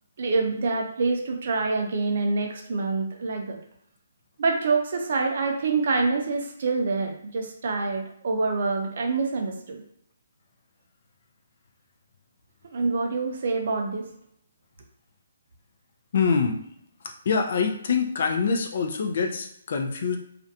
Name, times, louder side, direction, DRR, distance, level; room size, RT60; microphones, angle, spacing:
voice 1, 0.2-3.6 4.4-9.8 12.7-14.1, right 3 dB, 55° right, 2 dB, 0.5 m, -26 dB
voice 2, 16.1-16.6 17.0-20.2, left 5 dB, 55° left, 4 dB, 0.4 m, -25 dB
2.5 x 2.1 x 2.6 m, 0.70 s
hypercardioid pair, 165°, 0 cm